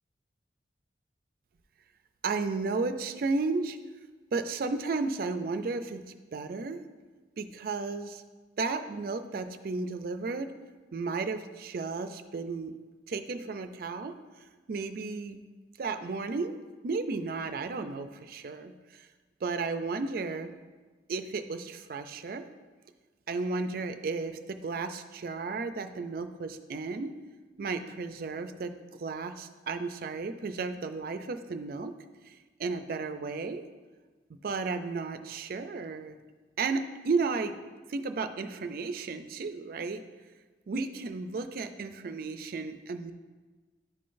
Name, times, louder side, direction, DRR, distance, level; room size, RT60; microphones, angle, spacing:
voice 1, 2.2-3.8 4.3-6.0 6.3-6.8 7.4-8.2 8.6-10.5 10.9-12.8 13.1-14.2 14.7-15.4 15.8-16.6 16.8-19.1 19.4-20.5 21.1-22.5 23.3-27.2 27.6-31.9 32.2-33.6 34.4-36.2 36.6-37.5 37.9-40.0 40.7-43.1, right 4 dB, 55° right, 9 dB, 0.4 m, -33 dB
10.5 x 3.8 x 2.5 m, 1.3 s
head